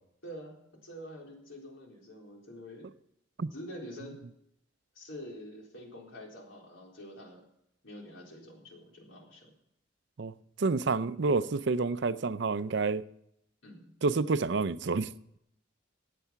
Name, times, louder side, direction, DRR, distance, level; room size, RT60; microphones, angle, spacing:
voice 1, 0.2-2.9 3.5-4.2 4.9-7.4 7.8-9.5 13.6-13.9, equal, 85° left, 4.0 m, -46 dB
voice 2, 10.2-13.1 14.0-15.1, right 4 dB, 60° right, 0.5 m, -29 dB
15.5 x 9.2 x 5.7 m
head